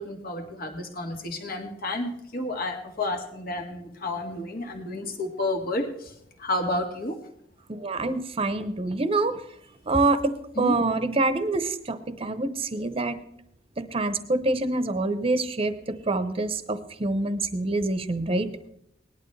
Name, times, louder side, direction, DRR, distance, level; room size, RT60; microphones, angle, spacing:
voice 1, 0.0-6.1 6.4-7.2 10.6-10.8, left 1 dB, 55° left, 4 dB, 1.9 m, -31 dB
voice 2, 7.7-9.4 9.9-10.3 10.6-13.2 13.8-18.5, right 2 dB, 30° right, 11 dB, 0.9 m, -26 dB
18.5 x 11.0 x 3.3 m, 0.73 s
head